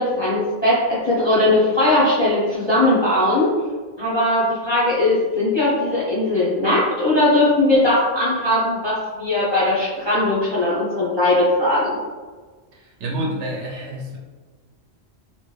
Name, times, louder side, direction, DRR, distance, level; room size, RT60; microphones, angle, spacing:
voice 1, 0.0-3.5 4.0-12.0, left 1 dB, 30° left, -8 dB, 0.5 m, -19 dB
voice 2, 12.7-14.2, right 1 dB, 70° right, -2 dB, 0.9 m, -28 dB
3.1 x 2.2 x 3.1 m, 1.4 s
omnidirectional pair, 1.3 m